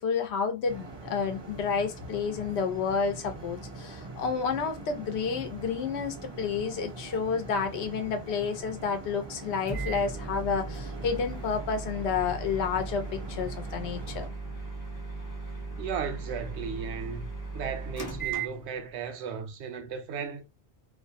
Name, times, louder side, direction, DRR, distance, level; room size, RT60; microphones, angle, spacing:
voice 1, 0.0-14.3, left 5 dB, 80° left, 0.9 m, -30 dB
sound 1, 0.6-14.3, right 3 dB, 35° right, 0.5 m, -43 dB
Microwave oven, 9.7-19.1, right 4 dB, 20° left, 0.7 m, -37 dB
voice 2, 15.8-17.3 17.5-20.4, right 6 dB, 85° right, 0.9 m, -35 dB
2.4 x 2.1 x 2.6 m
omnidirectional pair, 1.1 m